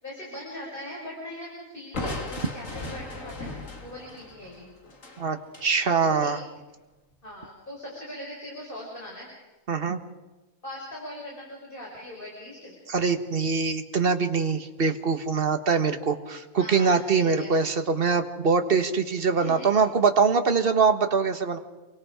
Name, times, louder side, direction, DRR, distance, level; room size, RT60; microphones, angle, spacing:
voice 1, 0.0-4.7 6.0-6.3 7.2-9.3 10.6-12.8 16.6-17.6 19.3-19.8, left 1 dB, 35° left, -3 dB, 5.6 m, -40 dB
Crushing, 1.9-5.7, left 2 dB, 65° left, 2.7 m, -37 dB
voice 2, 5.2-6.4 9.7-10.0 12.9-21.6, right 5 dB, 40° right, 8 dB, 1.5 m, -23 dB
28.0 x 23.5 x 5.0 m, 1.1 s
omnidirectional pair, 1.5 m